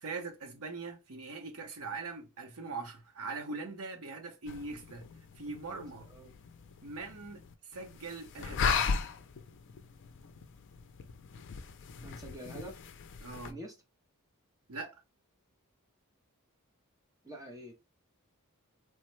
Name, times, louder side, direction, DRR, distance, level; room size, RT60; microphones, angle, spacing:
voice 1, 0.0-5.0 5.4-6.0 6.8-7.4 7.7-9.0 13.2-13.6 14.7-15.0, right 3 dB, 70° right, 0.8 m, -41 dB
sound 1, 4.5-13.5, left 5 dB, 55° left, 0.4 m, -38 dB
voice 2, 5.7-6.3 12.0-12.8 13.5-13.8 17.2-17.7, right 1 dB, 15° right, 0.5 m, -46 dB
3.3 x 2.1 x 3.1 m
head